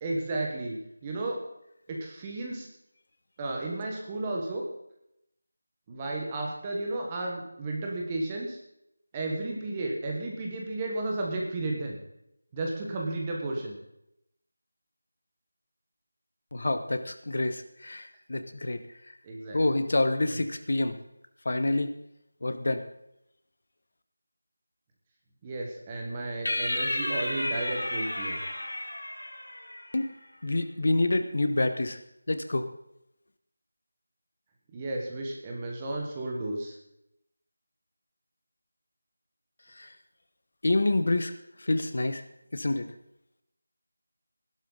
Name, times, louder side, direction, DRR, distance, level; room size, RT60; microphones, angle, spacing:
voice 1, 0.0-0.8 1.0-1.4 1.9-2.7 3.4-4.6 5.9-8.6 9.1-12.0 12.5-13.8 19.2-19.6 20.3-20.4 25.4-28.4 34.7-36.7, right 2 dB, 10° right, 0 dB, 1.2 m, -33 dB
voice 2, 16.5-18.8 19.5-21.0 21.4-21.9 22.4-22.8 29.9-30.1 30.4-32.0 32.3-32.7 39.7-39.9 40.6-42.2 42.5-42.9, left 2 dB, 45° left, 9 dB, 1.0 m, -27 dB
sound 1, 26.5-30.0, left 1 dB, 85° left, 4.5 m, -32 dB
16.0 x 12.0 x 3.9 m, 0.81 s
figure-of-eight pair, 180°, 0 cm